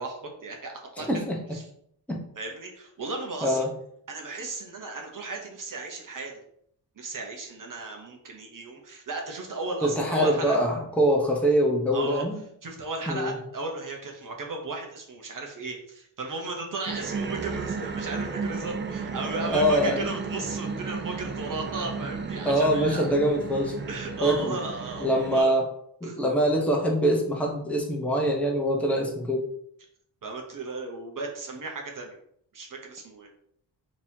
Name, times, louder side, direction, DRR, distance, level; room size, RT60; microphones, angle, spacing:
voice 1, 0.0-1.2 1.5-1.7 2.3-3.7 4.1-6.3 7.0-10.6 11.9-12.2 12.6-23.1 23.9-25.6 26.0-26.2 30.2-32.2 32.5-33.3, right 3 dB, 45° right, 1 dB, 0.8 m, -35 dB
voice 2, 1.0-1.4 2.1-2.2 3.4-3.7 9.8-12.3 13.1-13.4 19.4-20.0 22.4-23.8 24.2-24.5 25.0-25.7 26.0-29.4, equal, 5° left, -1 dB, 0.8 m, -24 dB
sound 1, 16.9-25.4, right 4 dB, 30° right, 0.3 m, -34 dB
3.9 x 3.0 x 2.7 m, 0.68 s
cardioid pair, 95°, 43 cm